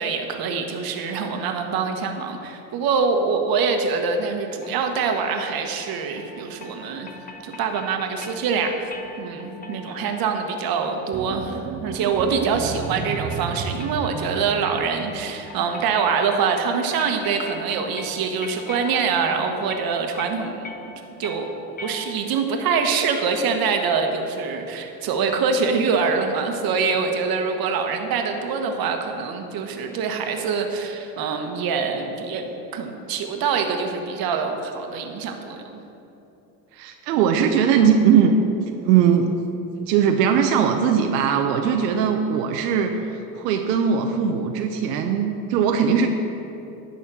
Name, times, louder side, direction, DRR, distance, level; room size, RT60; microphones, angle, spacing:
voice 1, 0.0-7.1 7.4-8.7 9.2-20.9 21.2-21.5 21.8-32.4 32.7-35.8, right 5 dB, 45° right, 4 dB, 1.3 m, -24 dB
sound 1, 4.6-22.5, left 3 dB, 20° left, 0.8 m, -42 dB
sound 2, 11.1-15.4, right 6 dB, 25° right, 0.5 m, -33 dB
voice 2, 36.7-38.3 38.7-39.3 39.9-46.1, right 7 dB, 80° right, 4 dB, 0.8 m, -20 dB
11.0 x 4.3 x 7.3 m, 3.0 s
supercardioid pair, 100°, 48 cm